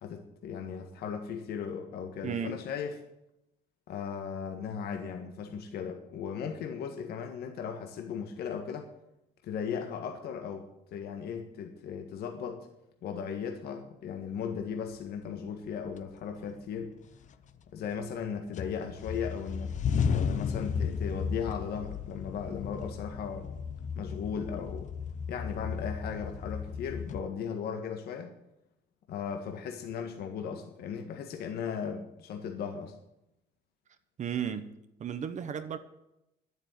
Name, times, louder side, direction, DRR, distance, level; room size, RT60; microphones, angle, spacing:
voice 1, 0.0-3.0 3.9-8.9 9.4-12.7 13.0-17.0 17.7-19.8 20.0-23.5 24.0-24.9 25.3-28.3 29.1-33.0, left 7 dB, 70° left, 1.7 m, -37 dB
voice 2, 2.2-2.6 34.2-34.7 35.0-35.8, right 8 dB, 45° right, 1.1 m, -34 dB
sound 1, 15.3-15.4 16.0-16.7 17.1-18.2 18.5-27.2, left 6 dB, 45° left, 0.8 m, -34 dB
10.5 x 9.0 x 9.4 m
cardioid pair, 110°, 17 cm